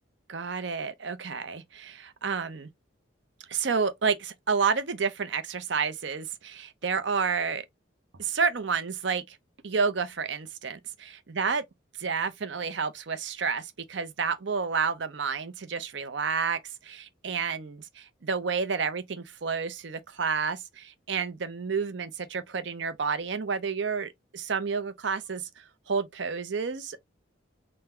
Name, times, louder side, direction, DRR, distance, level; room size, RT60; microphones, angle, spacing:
voice 1, 0.3-2.7 3.5-7.6 8.2-9.4 9.6-11.6 12.0-27.0, right 5 dB, 65° right, 0.6 m, -30 dB
3.8 x 2.2 x 4.3 m
head